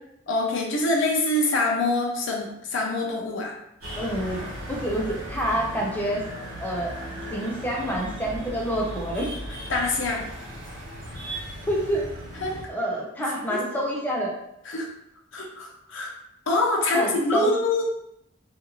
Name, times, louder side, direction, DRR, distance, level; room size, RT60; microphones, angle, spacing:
voice 1, 0.3-3.5 9.7-10.3 12.4-12.6 13.5-13.6 14.7-14.9 15.3-16.1 16.5-17.8, left 2 dB, 60° left, -1 dB, 0.6 m, -25 dB
sound 1, 3.8-12.6, equal, 85° right, 1.1 m, -37 dB
voice 2, 4.0-4.4 4.7-6.2 6.6-6.9 7.3-9.3 11.7-12.1 12.7-14.3 16.9-17.5, right 1 dB, 10° left, -3 dB, 0.5 m, -27 dB
2.6 x 2.4 x 3.0 m, 0.77 s
head